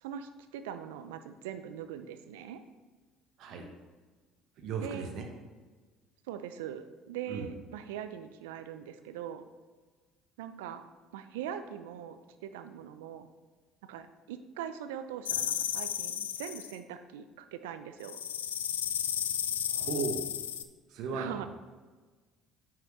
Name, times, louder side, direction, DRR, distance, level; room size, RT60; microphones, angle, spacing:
voice 1, 0.0-2.6 4.8-5.1 6.3-9.4 10.4-10.8 11.1-13.3 13.9-18.2 21.1-21.5, right 9 dB, 75° right, 10 dB, 0.5 m, -41 dB
voice 2, 4.6-5.2 7.3-7.5 19.7-20.2 20.9-21.5, right 4 dB, 60° right, 3 dB, 1.3 m, -36 dB
sound 1, 15.2-16.8 18.0-20.6, left 9 dB, 85° left, 0.3 m, -33 dB
9.2 x 5.9 x 3.2 m, 1.3 s
hypercardioid pair, 60°, 0 cm